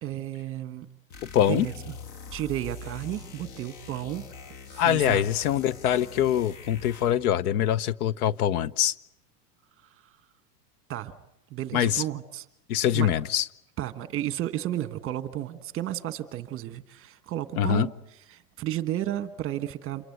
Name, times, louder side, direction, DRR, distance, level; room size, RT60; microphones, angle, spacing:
voice 1, 0.0-0.9 1.5-2.0 2.3-4.3 4.7-5.2 10.9-11.2 11.5-12.4 12.9-13.1 13.8-20.1, right 13 dB, 25° right, 11 dB, 1.4 m, -33 dB
sound 1, 1.1-7.3, left 5 dB, 40° left, 1.6 m, -43 dB
voice 2, 1.3-1.7 4.8-8.9 11.7-12.0 12.7-13.4 17.6-17.9, left 10 dB, 65° left, 17 dB, 0.9 m, -24 dB
28.0 x 23.5 x 8.0 m, 0.83 s
supercardioid pair, 140°, 47 cm